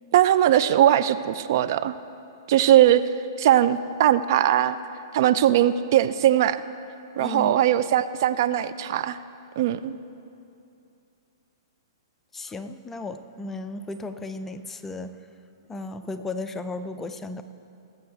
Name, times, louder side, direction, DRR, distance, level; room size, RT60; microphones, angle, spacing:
voice 1, 0.1-2.0 2.5-3.0 3.4-4.8 5.1-6.6 7.2-9.2 9.6-9.9, right 11 dB, 50° right, 13 dB, 0.4 m, -20 dB
voice 2, 7.2-7.6 12.3-15.2 15.7-17.4, left 3 dB, 10° left, 9 dB, 0.5 m, -35 dB
18.5 x 7.8 x 4.5 m, 2.7 s
hypercardioid pair, 115°, 2 cm